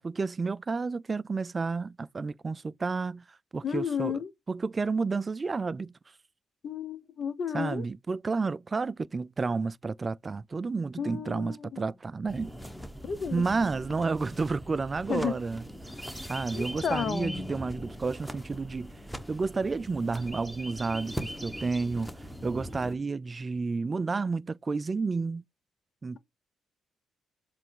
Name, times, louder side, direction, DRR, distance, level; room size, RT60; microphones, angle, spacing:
voice 1, 0.0-3.2 3.5-4.2 4.5-5.9 7.5-12.5 13.3-15.6 16.3-18.9 19.3-22.1 22.4-25.4 26.0-26.2, right 4 dB, 30° right, 0.4 m, -31 dB
voice 2, 3.6-4.3 6.6-7.8 11.0-11.9 13.0-13.4 15.1-15.4 16.5-17.5, left 7 dB, 55° left, 1.0 m, -32 dB
sound 1, 12.3-22.9, equal, ahead, 1.2 m, -41 dB
7.5 x 3.3 x 4.6 m
cardioid pair, 90°, 0 cm